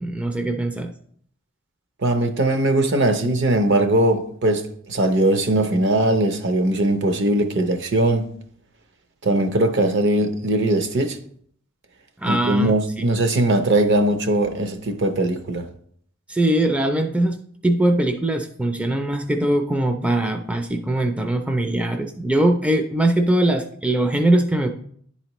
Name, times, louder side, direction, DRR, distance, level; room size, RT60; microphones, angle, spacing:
voice 1, 0.0-0.9 12.2-13.1 16.3-17.4 17.6-24.7, right 1 dB, 5° right, 0.4 m, -21 dB
voice 2, 2.0-8.3 9.2-11.2 12.3-15.7, right 1 dB, 60° right, 0.7 m, -20 dB
10.5 x 4.2 x 3.0 m
head